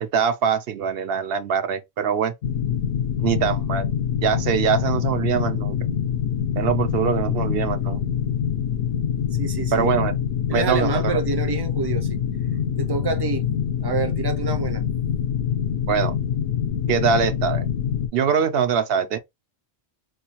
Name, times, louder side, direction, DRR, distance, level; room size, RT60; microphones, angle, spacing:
voice 1, 0.0-2.3 3.2-3.9 4.2-5.8 6.6-8.0 9.7-10.1 10.5-11.2 15.9-16.1 16.9-17.7 18.1-19.2, right 7 dB, 65° right, 0.8 m, -23 dB
sound 1, 2.4-18.1, left 8 dB, 70° left, 0.8 m, -25 dB
voice 2, 9.4-9.9 10.5-12.2 12.8-13.4 13.8-14.8, right 5 dB, 30° right, 0.6 m, -27 dB
4.3 x 2.3 x 2.9 m
omnidirectional pair, 1.1 m